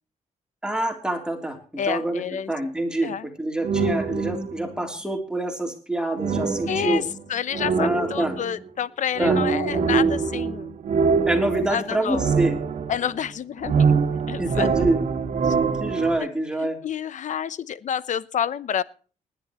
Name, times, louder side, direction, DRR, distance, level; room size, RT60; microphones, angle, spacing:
voice 1, 0.6-7.0 7.8-8.3 9.2-9.4 11.3-12.5 14.4-15.0 15.8-16.8, right 2 dB, 5° right, 3 dB, 3.4 m, -26 dB
voice 2, 1.8-2.5 3.0-3.3 6.7-7.0 7.3-10.7 11.7-12.2 12.9-13.9 14.3-14.7 15.4-15.6 16.2-16.3 16.6-18.8, left 8 dB, 65° left, 17 dB, 0.8 m, -28 dB
sound 1, 3.6-4.8 6.2-8.7 9.1-13.3 13.6-16.2, right 5 dB, 65° right, 2.1 m, -24 dB
20.0 x 11.5 x 3.1 m, 0.38 s
cardioid pair, 105°, 14 cm